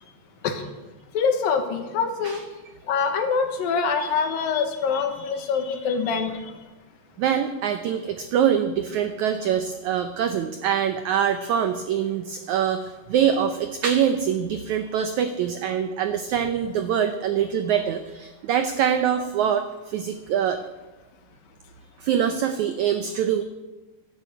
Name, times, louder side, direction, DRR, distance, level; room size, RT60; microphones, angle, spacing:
voice 1, 1.1-2.4 2.8-6.6, left 5 dB, 75° left, 6 dB, 2.9 m, -25 dB
voice 2, 7.2-20.6 22.0-23.4, right 8 dB, 85° right, 8 dB, 1.6 m, -24 dB
12.5 x 10.0 x 7.9 m, 1.1 s
omnidirectional pair, 4.3 m